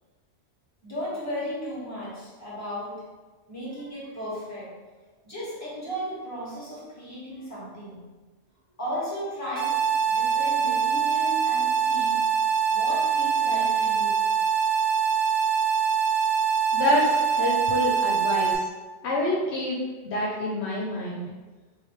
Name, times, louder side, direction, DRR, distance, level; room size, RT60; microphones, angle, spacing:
voice 1, 0.8-3.0 3.5-4.7 5.2-8.0 8.8-9.7 10.0-12.2 12.7-14.2, equal, 15° left, -8 dB, 1.5 m, -35 dB
sound 1, 9.6-18.6, right 7 dB, 50° right, 0.7 m, -24 dB
voice 2, 16.7-18.6 19.0-19.8 20.0-21.3, left 1 dB, 75° left, -3 dB, 0.9 m, -27 dB
3.8 x 3.2 x 3.1 m, 1.3 s
omnidirectional pair, 1.2 m